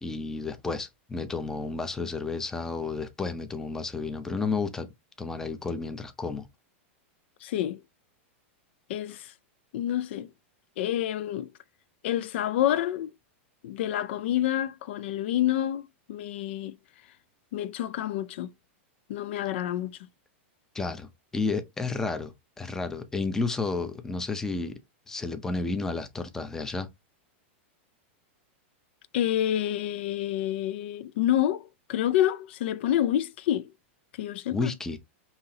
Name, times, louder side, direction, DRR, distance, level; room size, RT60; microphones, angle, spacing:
voice 1, 0.0-4.9 5.2-6.5 20.7-24.8 25.1-26.9 34.5-35.0, left 4 dB, 5° left, 0.5 m, -31 dB
voice 2, 7.4-7.8 8.9-9.3 9.7-10.3 10.8-11.5 12.0-13.1 13.6-16.8 17.5-18.5 19.1-20.0 29.1-33.7 34.2-34.7, left 12 dB, 65° left, 0.3 m, -28 dB
5.5 x 2.8 x 2.7 m
supercardioid pair, 155°, 7 cm